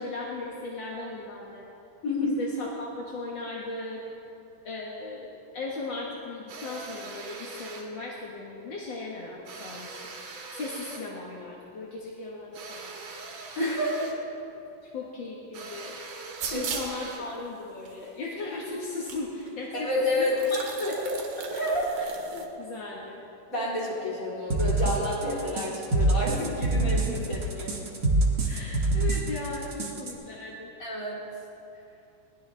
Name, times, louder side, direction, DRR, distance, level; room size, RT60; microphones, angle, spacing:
voice 1, 0.0-1.6 2.2-4.0 4.6-10.0 10.6-13.0 14.8-16.0 16.5-19.9 20.2-21.1 22.0-23.2 28.4-30.7, left 3 dB, 45° left, -3 dB, 1.6 m, -37 dB
voice 2, 2.0-2.4 13.6-14.0 16.5-16.7 19.7-20.4 21.6-21.9 23.5-27.7 30.8-31.2, left 1 dB, 25° left, -6 dB, 4.1 m, -29 dB
sound 1, 6.5-7.9 9.5-11.1 12.5-14.3 15.5-17.4, right 4 dB, 65° right, 3.2 m, -42 dB
sound 2, 16.4-17.0 17.9-18.0 19.1-19.2 19.5-19.6 20.3-22.5, right 5 dB, 85° right, 3.2 m, -35 dB
sound 3, 24.5-30.1, right 2 dB, 40° right, 1.4 m, -25 dB
21.0 x 19.0 x 3.5 m, 2.8 s
omnidirectional pair, 4.0 m